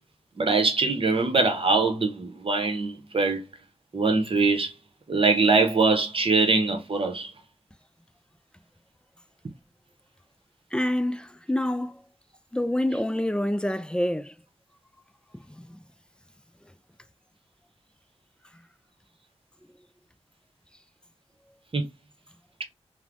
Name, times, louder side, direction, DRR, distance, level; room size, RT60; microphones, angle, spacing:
voice 1, 0.4-3.4 3.9-4.7 5.1-7.3 21.7-21.8, right 3 dB, 55° right, 0.8 m, -23 dB
voice 2, 10.7-12.0 12.5-14.3 15.3-15.8, left 1 dB, 10° left, 0.3 m, -27 dB
3.2 x 2.1 x 2.4 m
cardioid pair, 45°, 11 cm